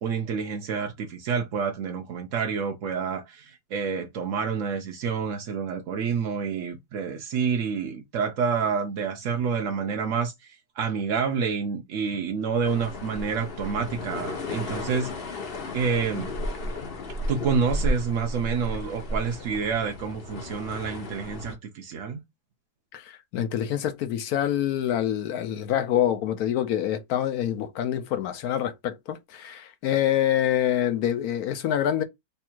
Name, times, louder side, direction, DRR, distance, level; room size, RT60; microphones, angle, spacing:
voice 1, 0.0-15.1 15.7-16.3 17.3-22.2, right 6 dB, 65° right, 0.7 m, -28 dB
sound 1, 12.6-21.5, left 1 dB, 50° left, 0.7 m, -33 dB
voice 2, 22.9-32.0, left 11 dB, 70° left, 1.0 m, -26 dB
3.4 x 2.4 x 4.4 m
omnidirectional pair, 1.9 m